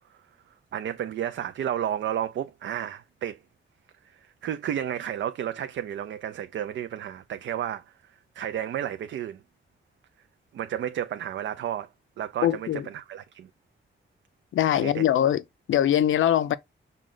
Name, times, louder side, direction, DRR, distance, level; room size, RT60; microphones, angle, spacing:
voice 1, 0.7-3.4 4.0-7.8 8.4-9.4 10.5-11.9 12.2-13.5 14.8-15.0, right 10 dB, 70° right, 0.4 m, -32 dB
voice 2, 12.4-12.9 14.5-15.4 15.7-16.6, left 11 dB, 85° left, 0.4 m, -22 dB
6.1 x 2.2 x 3.7 m
wide cardioid pair, 160°, 20 cm